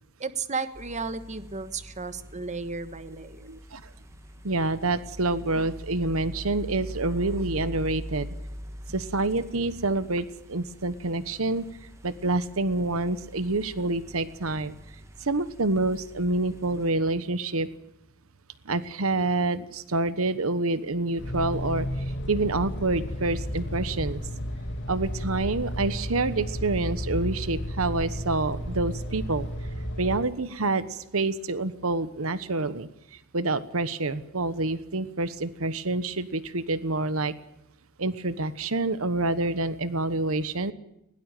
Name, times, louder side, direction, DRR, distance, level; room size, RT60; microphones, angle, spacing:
voice 1, 0.2-3.5, right 4 dB, 35° right, 11 dB, 1.4 m, -34 dB
sound 1, 0.7-16.9, equal, 15° right, 2.1 m, -43 dB
voice 2, 3.4-3.9 4.4-8.3 8.9-11.7 12.0-14.7 15.2-17.7 18.6-24.2 24.9-29.5 30.0-37.3 38.0-40.7, right 2 dB, 70° right, 14 dB, 1.2 m, -27 dB
sound 2, 21.2-30.2, equal, 55° left, 2.9 m, -33 dB
20.5 x 18.0 x 9.0 m, 0.86 s
head